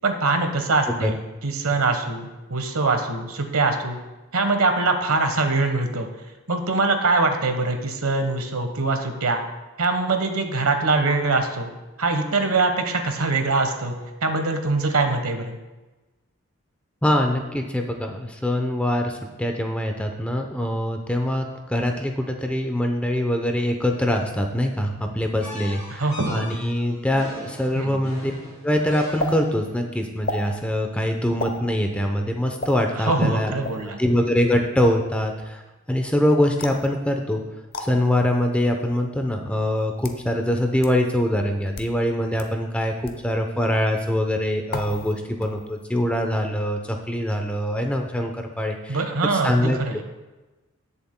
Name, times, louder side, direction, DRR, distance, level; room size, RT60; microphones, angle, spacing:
voice 1, 0.0-4.0 4.3-6.1 6.5-9.4 9.8-11.7 12.0-13.9 14.2-15.6 26.0-26.6 27.7-28.0 32.9-34.0 48.9-50.0, right 3 dB, 85° right, 6 dB, 1.2 m, -23 dB
voice 2, 17.0-26.0 26.3-28.3 28.6-33.5 34.0-35.6 35.9-37.4 37.8-49.0 49.2-49.8, left 1 dB, 5° left, 3 dB, 0.7 m, -23 dB
sound 1, 25.4-29.7, left 1 dB, 30° left, 2.9 m, -39 dB
sound 2, 29.2-29.3 30.2-30.5 31.4-31.6 32.6-32.7 33.6-33.9 36.6-36.9 37.7-37.9 38.8-38.9 39.8-40.2 40.8-40.9 41.6-41.9 42.4-42.5 43.0-43.2 44.7-45.1 45.4-45.8, left 2 dB, 45° left, 0.8 m, -31 dB
19.0 x 7.0 x 2.2 m, 1.1 s
head